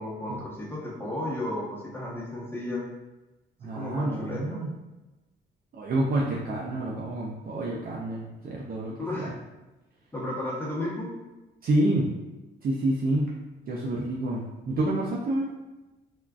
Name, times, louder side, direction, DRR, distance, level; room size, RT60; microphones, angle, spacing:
voice 1, 0.0-2.8 3.7-4.6 9.0-9.3 10.1-11.1, left 1 dB, 10° left, -6 dB, 0.9 m, -33 dB
voice 2, 3.6-4.7 5.7-9.3 11.6-12.1 12.6-13.3 13.7-15.5, right 1 dB, 50° right, -4 dB, 0.5 m, -28 dB
3.6 x 2.4 x 2.3 m, 1.1 s
cardioid pair, 90°, 20 cm